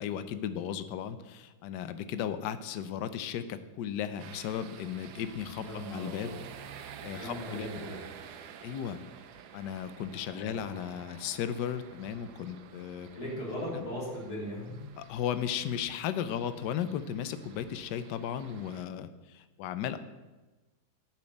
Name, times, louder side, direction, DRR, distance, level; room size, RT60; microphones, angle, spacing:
voice 1, 0.0-6.4 6.8-7.7 8.6-9.0 9.5-13.1 13.7-13.9 15.0-20.0, left 9 dB, 70° left, 11 dB, 1.2 m, -35 dB
sound 1, 4.2-18.8, right 8 dB, 65° right, 1.1 m, -50 dB
voice 2, 5.6-6.4 7.2-8.0 10.3-10.6 13.1-14.8, equal, 50° left, -5 dB, 3.9 m, -38 dB
10.5 x 5.9 x 7.9 m, 1.2 s
omnidirectional pair, 2.2 m